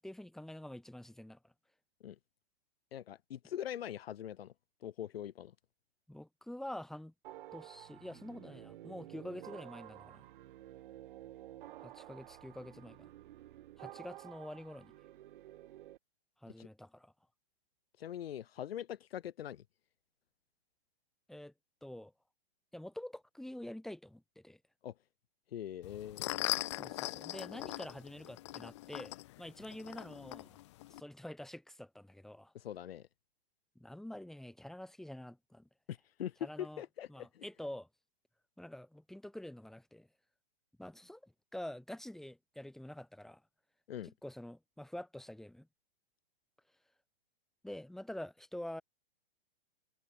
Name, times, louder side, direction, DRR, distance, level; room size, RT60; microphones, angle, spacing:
voice 1, 0.0-1.5 6.1-7.1 7.5-10.2 11.8-13.1 13.8-14.9 16.4-17.1 21.3-21.5 21.8-22.1 22.7-24.6 26.5-30.6 30.9-32.5 33.7-35.7 36.4-36.8 37.1-37.9 38.6-40.1 40.8-43.4 44.0-45.7 47.6-48.8, left 1 dB, ahead, 1.6 m, -47 dB
voice 2, 2.9-4.5 4.8-5.5 16.6-16.7 18.0-19.6 24.8-24.9 25.5-26.2 32.5-33.1 35.9-37.5 43.9-44.1, left 11 dB, 70° left, 2.0 m, -42 dB
sound 1, 7.2-16.0, right 14 dB, 55° right, 4.6 m, -52 dB
sound 2, 25.8-31.0, left 17 dB, 30° left, 0.4 m, -40 dB
hypercardioid pair, 155°, 31 cm